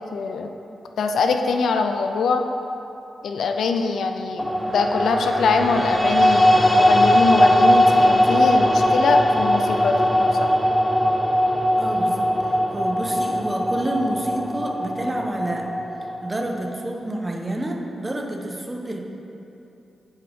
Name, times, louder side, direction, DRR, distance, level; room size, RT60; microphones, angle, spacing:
voice 1, 0.1-0.5 1.0-2.4 3.2-10.5, left 4 dB, 75° left, 5 dB, 0.4 m, -23 dB
sound 1, 4.4-16.6, equal, 5° left, 0.5 m, -19 dB
voice 2, 11.8-15.7 16.2-19.0, right 1 dB, 30° right, 2 dB, 0.9 m, -29 dB
7.8 x 4.9 x 3.6 m, 2.8 s
supercardioid pair, 40°, 0 cm